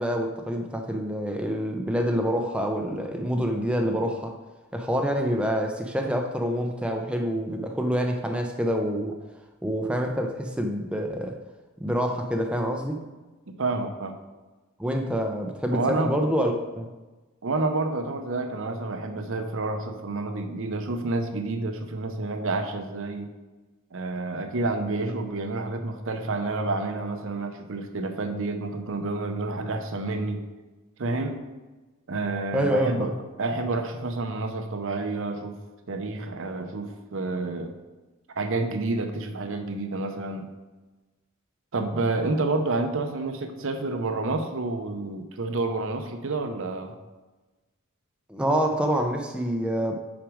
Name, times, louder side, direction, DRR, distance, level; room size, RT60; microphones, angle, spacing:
voice 1, 0.0-4.3 4.7-9.1 9.6-11.4 11.8-13.0 14.8-16.9 32.5-33.1 48.3-49.9, equal, 5° right, 2 dB, 0.5 m, -26 dB
voice 2, 13.5-14.2 15.7-16.1 17.4-23.3 23.9-30.4 31.0-31.4 32.1-33.1 33.4-35.6 35.9-37.7 38.4-40.5 41.7-47.0, right 2 dB, 65° right, 6 dB, 0.7 m, -29 dB
6.1 x 4.9 x 4.9 m, 1.2 s
head